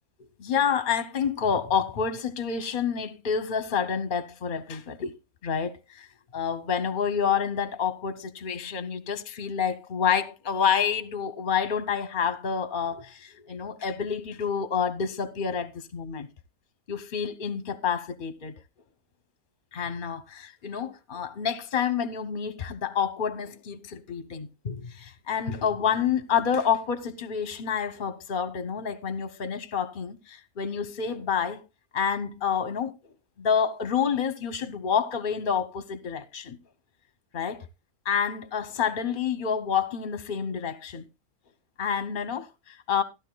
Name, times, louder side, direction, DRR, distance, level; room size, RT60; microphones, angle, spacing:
voice 1, 0.4-5.2 5.4-6.1 6.3-16.3 16.9-18.6 19.7-31.6 31.9-32.9 33.4-36.6 37.3-37.6 38.0-41.0 41.8-43.0, left 7 dB, 40° left, 0.8 m, -28 dB
15.0 x 11.5 x 2.2 m
omnidirectional pair, 1.7 m